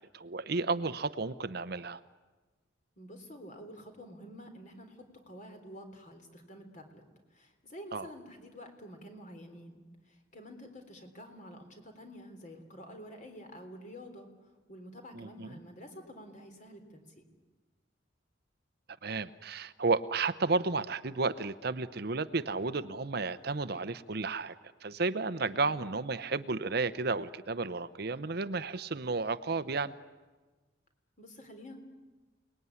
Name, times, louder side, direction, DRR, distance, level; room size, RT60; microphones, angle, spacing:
voice 1, 0.0-2.0 7.9-8.1 15.1-15.6 19.0-24.6 24.8-29.9, right 3 dB, 55° right, 13 dB, 0.8 m, -32 dB
voice 2, 3.0-7.0 7.3-9.8 10.3-14.3 14.7-17.2 25.5-25.7 31.2-31.8, equal, 40° left, 5 dB, 3.7 m, -49 dB
29.0 x 19.5 x 9.7 m, 1.3 s
head